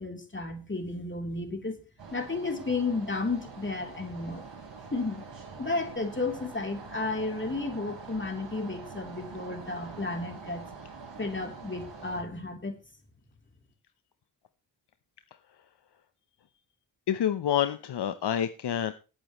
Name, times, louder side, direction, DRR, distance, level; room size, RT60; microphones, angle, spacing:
voice 1, 0.0-1.8 2.1-4.5 4.9-5.2 5.6-10.7 11.2-12.8, left 3 dB, 25° left, 4 dB, 3.4 m, -33 dB
sound 1, 2.0-12.2, right 4 dB, 85° right, 4.6 m, -45 dB
voice 2, 17.1-18.9, left 9 dB, 65° left, 11 dB, 0.9 m, -28 dB
19.5 x 8.6 x 3.1 m, 0.33 s
cardioid pair, 50°, 43 cm